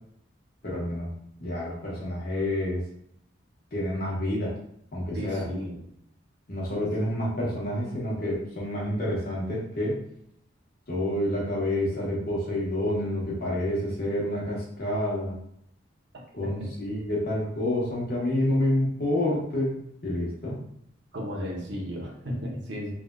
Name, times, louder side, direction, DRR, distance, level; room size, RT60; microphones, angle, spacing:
voice 1, 0.6-1.1 1.4-2.8 3.7-4.5 4.9-5.4 6.5-10.0 10.9-15.4 16.3-20.6, left 1 dB, 50° left, -5 dB, 1.1 m, -28 dB
voice 2, 5.1-5.8 16.6-16.7 21.1-22.9, equal, 70° right, -1 dB, 0.8 m, -34 dB
3.4 x 2.5 x 2.2 m, 0.71 s
head